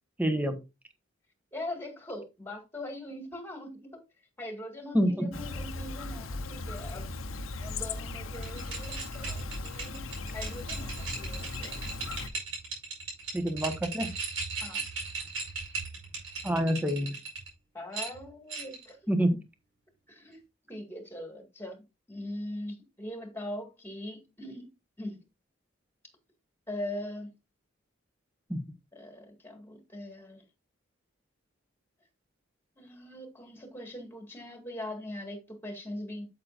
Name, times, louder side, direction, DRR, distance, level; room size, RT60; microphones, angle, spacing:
voice 1, 0.2-0.6 4.9-5.3 13.3-14.1 16.4-17.1 19.1-19.4 28.5-28.6, equal, 10° right, 1.1 m, -27 dB
voice 2, 1.5-4.0 4.4-7.1 7.6-10.1 10.3-11.9 14.6-14.8 17.7-19.0 20.1-20.4 20.7-24.7 25.0-25.2 26.7-27.3 28.9-30.4 32.8-36.3, left 1 dB, 10° left, 1.9 m, -41 dB
Chirp tweet, 5.3-12.3, left 3 dB, 80° left, 0.9 m, -38 dB
sound 1, 8.3-17.5 17.9-18.9, right 4 dB, 75° right, 5.1 m, -38 dB
8.4 x 7.8 x 2.5 m
head